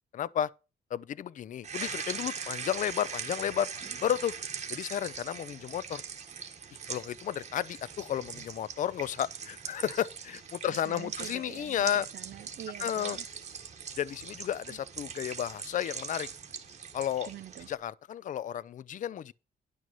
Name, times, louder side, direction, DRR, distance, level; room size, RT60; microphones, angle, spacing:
voice 1, 0.1-0.5 0.9-3.7 4.0-4.3 4.7-6.0 6.9-12.1 12.8-13.2 14.0-16.3 16.9-17.3 17.7-19.3, left 10 dB, 50° left, 0.4 m, -32 dB
sound 1, 1.6-17.8, right 6 dB, 45° right, 1.3 m, -41 dB
voice 2, 10.7-13.2 14.7-14.8 17.3-17.7, right 12 dB, 70° right, 0.6 m, -46 dB
10.5 x 6.1 x 5.4 m
cardioid pair, 110°, 17 cm